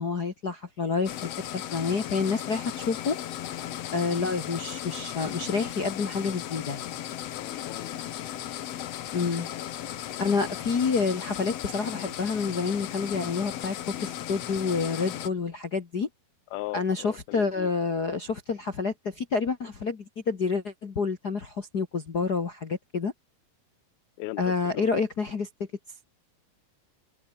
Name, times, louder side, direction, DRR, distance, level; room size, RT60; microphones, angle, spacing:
voice 1, 0.0-3.2 3.9-6.9 9.1-9.5 10.2-16.1 16.7-23.1 24.4-25.5, left 4 dB, 45° left, 1.3 m, -28 dB
sound 1, 1.0-15.3, left 11 dB, 65° left, 1.7 m, -36 dB
voice 2, 7.3-8.0 16.5-17.7 24.2-24.9, left 18 dB, 90° left, 2.7 m, -38 dB
omnidirectional pair, 4.2 m